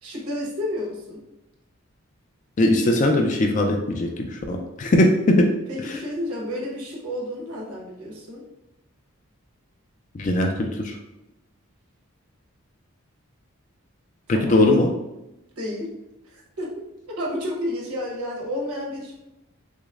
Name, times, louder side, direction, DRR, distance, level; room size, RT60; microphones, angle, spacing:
voice 1, 0.0-1.2 5.7-8.4 14.3-14.6 15.6-15.9 16.2-16.7 17.1-19.1, left 1 dB, 85° right, -2 dB, 1.1 m, -31 dB
voice 2, 2.6-5.5 5.9-6.0 10.1-11.0 14.3-14.9, left 1 dB, 35° left, 3 dB, 0.3 m, -20 dB
6.0 x 2.0 x 2.4 m, 0.93 s
head